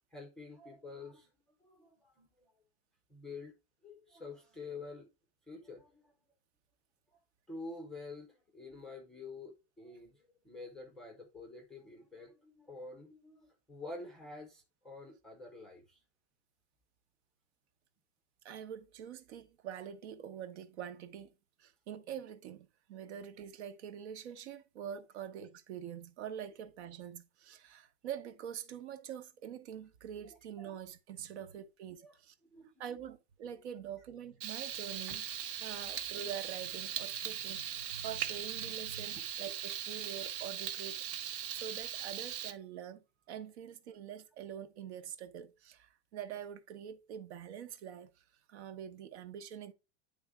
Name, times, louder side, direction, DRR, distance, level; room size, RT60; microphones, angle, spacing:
voice 1, 0.1-1.3 1.6-2.5 3.1-3.5 3.8-5.1 5.5-6.1 7.5-16.0 30.2-30.4 30.7-30.8 32.0-32.2 32.5-32.7 33.5-33.6, left 3 dB, ahead, 0.5 m, -48 dB
voice 2, 18.4-21.3 21.6-32.3 32.8-35.2 35.6-49.7, right 9 dB, 65° right, 1.0 m, -45 dB
Frying (food), 34.4-42.5, right 10 dB, 50° right, 0.7 m, -39 dB
9.3 x 3.5 x 3.5 m
supercardioid pair, 180°, 36 cm